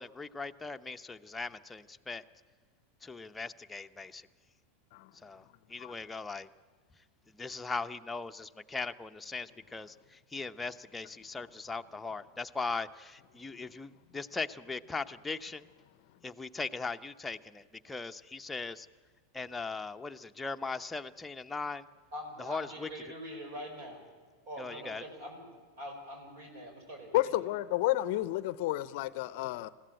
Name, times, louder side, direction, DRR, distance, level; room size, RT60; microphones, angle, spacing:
voice 1, 0.0-2.2 3.0-4.3 5.2-6.5 7.3-15.7 16.2-18.9 19.3-21.9 22.4-22.9 24.6-25.0, left 4 dB, 10° left, 0.7 m, -39 dB
voice 2, 22.1-24.0 24.5-27.4, equal, 60° right, 5.0 m, -44 dB
voice 3, 27.1-29.7, left 15 dB, 60° left, 0.6 m, -31 dB
21.5 x 15.5 x 8.8 m
hypercardioid pair, 95°, 0 cm